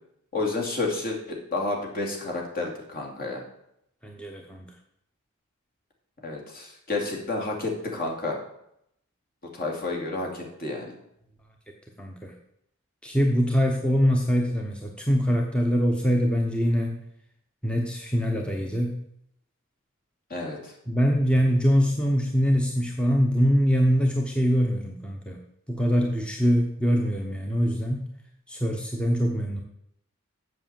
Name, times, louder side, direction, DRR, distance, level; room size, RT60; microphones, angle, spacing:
voice 1, 0.3-3.4 6.2-8.4 9.5-10.9 20.3-20.7, left 2 dB, 45° left, 1 dB, 2.6 m, -30 dB
voice 2, 4.0-4.7 12.0-12.3 13.0-17.0 17.6-19.0 20.9-25.4 25.7-28.1 28.5-29.6, equal, 5° left, 1 dB, 0.9 m, -23 dB
7.8 x 6.9 x 7.5 m, 0.76 s
head